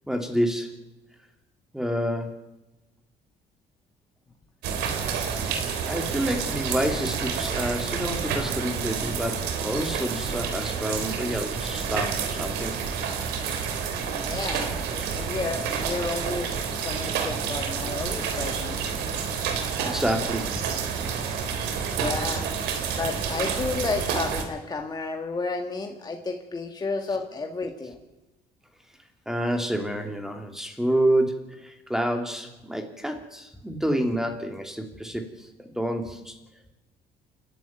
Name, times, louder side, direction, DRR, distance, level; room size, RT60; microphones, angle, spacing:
voice 1, 0.1-0.8 1.7-2.4 5.5-5.6 5.9-12.8 19.8-20.5 29.3-36.3, right 1 dB, 5° right, 5 dB, 2.7 m, -28 dB
sound 1, 4.6-24.4, right 6 dB, 90° right, 3.2 m, -29 dB
voice 2, 14.1-16.5 16.8-18.8 21.9-22.5 22.9-28.0, left 3 dB, 25° left, 3 dB, 1.9 m, -32 dB
29.0 x 12.0 x 9.3 m, 1.0 s
cardioid pair, 110°, 17 cm